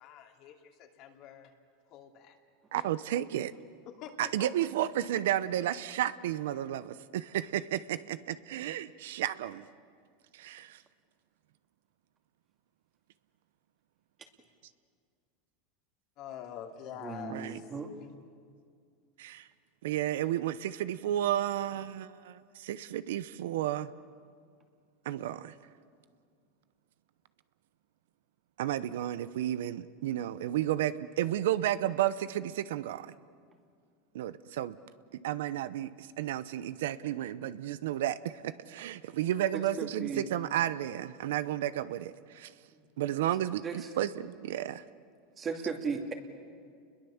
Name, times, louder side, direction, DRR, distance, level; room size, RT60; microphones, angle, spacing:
voice 1, 0.0-1.5 1.9-2.4 2.7-2.8 3.8-4.7 16.2-17.7, left 9 dB, 50° left, 3 dB, 2.7 m, -46 dB
voice 2, 2.7-3.5 4.2-9.7 10.3-10.8 17.3-17.6 19.2-19.5 19.8-23.9 25.0-25.5 28.6-33.1 34.1-34.8 35.2-38.2 38.4-42.5 43.0-44.8, right 12 dB, 80° right, 15 dB, 0.8 m, -32 dB
voice 3, 17.0-17.9 39.5-40.3 42.7-42.9 43.6-43.8 45.4-46.1, right 5 dB, 25° right, 4 dB, 2.5 m, -36 dB
30.0 x 21.5 x 7.2 m, 2.2 s
supercardioid pair, 140°, 0 cm